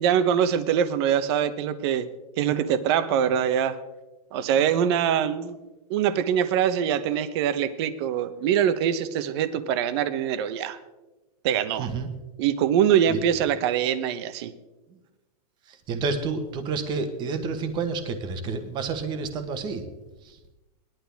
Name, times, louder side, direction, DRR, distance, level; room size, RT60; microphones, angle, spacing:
voice 1, 0.0-2.1 2.4-3.8 4.3-5.6 5.9-10.8 11.4-11.9 12.4-14.5, right 9 dB, 40° right, 12 dB, 0.9 m, -23 dB
voice 2, 15.9-19.8, right 4 dB, 20° right, 8 dB, 1.2 m, -29 dB
19.5 x 11.5 x 3.5 m, 1.1 s
supercardioid pair, 165°, 20 cm